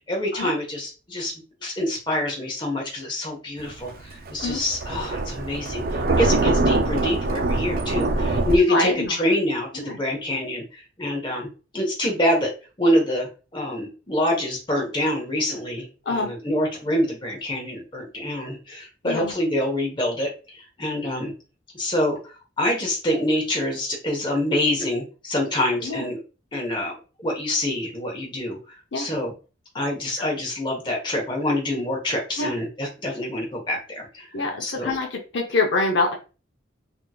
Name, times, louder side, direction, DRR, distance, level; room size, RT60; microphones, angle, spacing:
voice 1, 0.1-1.3 1.6-3.9 4.3-8.9 9.2-10.6 11.0-11.5 11.7-12.5 12.8-20.3 20.8-21.3 21.7-22.2 22.6-26.2 26.5-26.9 27.2-28.6 28.9-29.3 29.7-34.3 34.6-34.9, left 1 dB, 25° left, -1 dB, 1.0 m, -25 dB
Thunder, 3.6-8.6, right 2 dB, 50° right, 0.4 m, -23 dB
voice 2, 8.7-9.2 9.7-10.0 16.1-16.4 19.0-19.3 25.8-26.0 28.9-29.1 32.4-32.5 34.3-36.1, left 3 dB, 70° left, 1 dB, 0.7 m, -25 dB
3.5 x 2.9 x 2.3 m, 0.33 s
head